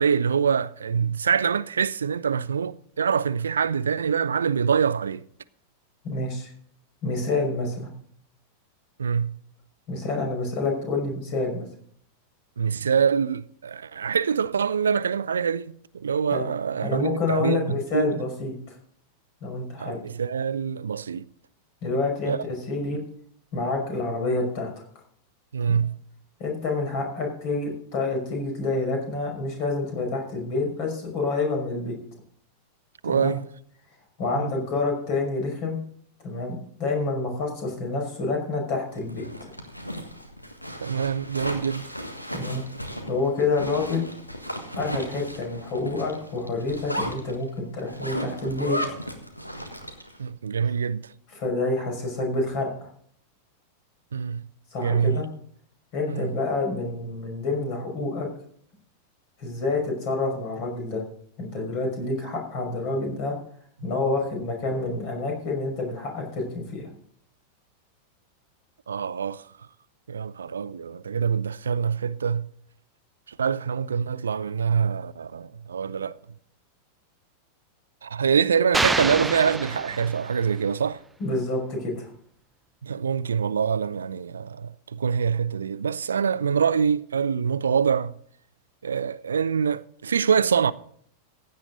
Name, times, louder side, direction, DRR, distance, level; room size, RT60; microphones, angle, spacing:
voice 1, 0.0-5.2 9.0-9.4 12.6-18.2 19.8-21.3 22.3-22.4 25.5-26.0 33.0-33.4 34.3-34.5 40.8-42.0 50.2-51.1 54.1-54.4 54.8-55.2 56.1-56.3 68.9-69.4 70.1-72.5 73.3-76.2 78.0-81.0 82.8-88.1 88.8-90.7, right 6 dB, 70° right, 0.5 m, -25 dB
voice 2, 6.0-6.5 7.0-7.9 9.9-11.7 16.3-16.5 16.8-18.8 19.4-20.0 21.8-23.0 23.5-24.7 25.7-25.8 26.4-32.0 33.0-33.3 34.2-35.8 36.2-39.2 42.3-42.6 43.1-44.1 44.7-48.8 51.3-52.7 54.7-55.3 55.9-58.3 59.4-61.0 61.4-63.3 63.8-66.9 81.2-82.1, left 3 dB, 45° left, 5.5 m, -28 dB
Zipper (clothing), 39.0-50.2, equal, 90° left, 1.5 m, -35 dB
sound 1, 78.7-80.5, right 3 dB, 10° right, 0.4 m, -27 dB
16.0 x 9.5 x 3.9 m
figure-of-eight pair, 90°, 0 cm